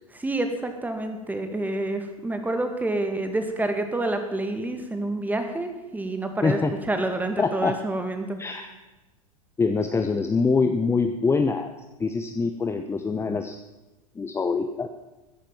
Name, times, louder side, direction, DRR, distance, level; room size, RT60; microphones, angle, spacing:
voice 1, 0.1-8.4, right 2 dB, 10° right, 6 dB, 2.1 m, -28 dB
voice 2, 6.4-6.7 7.4-7.8 8.4-8.7 9.6-11.7 12.0-13.6 14.2-14.9, left 4 dB, 15° left, 7 dB, 0.9 m, -24 dB
13.5 x 10.5 x 7.2 m, 1.1 s
hypercardioid pair, 95°, 19 cm